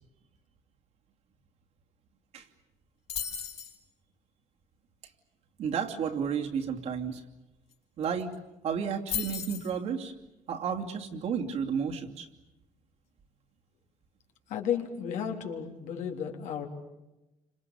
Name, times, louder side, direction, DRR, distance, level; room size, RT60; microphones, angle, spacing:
sound 1, 3.1-3.8 7.7-7.8 8.0-8.4 9.1-9.7, left 9 dB, 55° left, 4.6 m, -35 dB
voice 1, 5.6-7.2 8.0-8.3 8.6-10.1 10.5-12.3, right 7 dB, 60° right, 2 dB, 2.7 m, -32 dB
voice 2, 14.5-16.7, left 8 dB, 70° left, 3 dB, 3.4 m, -33 dB
29.0 x 26.5 x 7.0 m, 1.0 s
cardioid pair, 145°, 13 cm